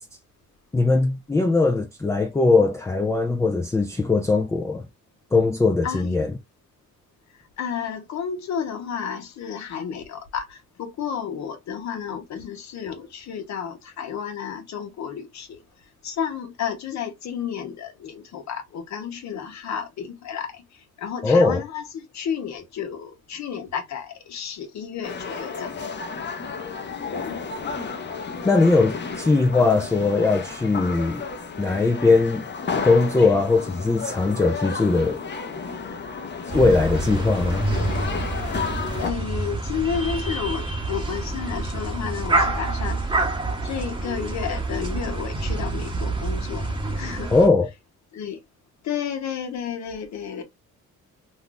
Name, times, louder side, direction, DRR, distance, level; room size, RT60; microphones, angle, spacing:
voice 1, 0.7-4.9 5.3-6.3 21.2-21.6 28.4-31.2 31.6-32.4 32.8-35.2 36.5-37.7 47.3-47.7, left 3 dB, 10° left, 0.4 m, -20 dB
voice 2, 5.8-6.2 7.6-15.6 16.0-20.6 21.0-25.7 27.2-27.4 39.0-43.1 43.6-46.7 46.9-47.3 48.1-48.4 48.8-50.4, left 7 dB, 65° left, 0.9 m, -31 dB
sound 1, 25.0-39.1, left 5 dB, 35° left, 0.7 m, -32 dB
sound 2, 36.5-47.5, right 2 dB, 15° right, 0.9 m, -27 dB
2.6 x 2.3 x 3.8 m
cardioid pair, 90°, 30 cm